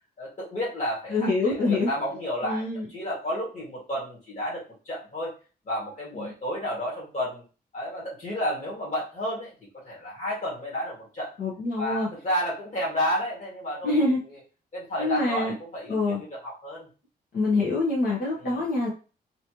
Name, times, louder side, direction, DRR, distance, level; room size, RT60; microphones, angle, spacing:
voice 1, 0.2-5.3 5.7-7.4 7.7-11.3 11.8-14.1 14.7-16.9 18.4-18.6, equal, 45° left, -5 dB, 2.2 m, -31 dB
voice 2, 1.1-1.9 2.4-2.9 6.1-6.3 11.4-12.1 13.8-14.2 15.0-15.5 15.9-16.2 17.3-18.9, left 2 dB, 70° left, -6 dB, 1.3 m, -25 dB
4.1 x 2.9 x 3.1 m, 0.34 s
wide cardioid pair, 155°, 17 cm